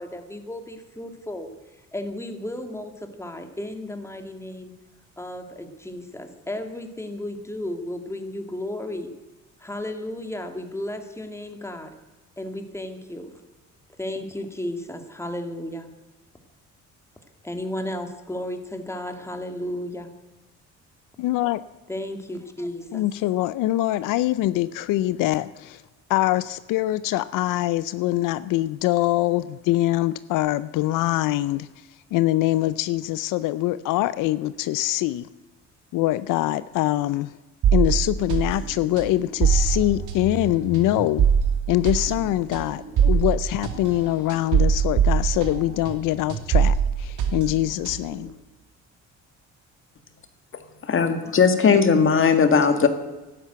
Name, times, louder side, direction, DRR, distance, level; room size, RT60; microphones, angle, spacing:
voice 1, 0.0-1.5 1.9-4.8 5.2-9.1 9.6-12.0 12.4-13.3 14.0-15.9 17.4-20.1 21.9-23.1 51.7-52.2, left 1 dB, 10° left, 6 dB, 2.1 m, -34 dB
voice 2, 21.2-21.6 22.9-25.8 26.1-31.7 32.1-35.3 35.9-37.3 37.7-41.3 41.7-48.3, left 15 dB, 85° left, 15 dB, 0.6 m, -24 dB
sound 1, 37.6-46.0 46.3-48.2, right 7 dB, 75° right, 2.6 m, -23 dB
voice 3, 50.9-52.9, left 5 dB, 40° left, 8 dB, 2.0 m, -18 dB
12.5 x 12.0 x 9.0 m, 1.1 s
cardioid pair, 95°, 31 cm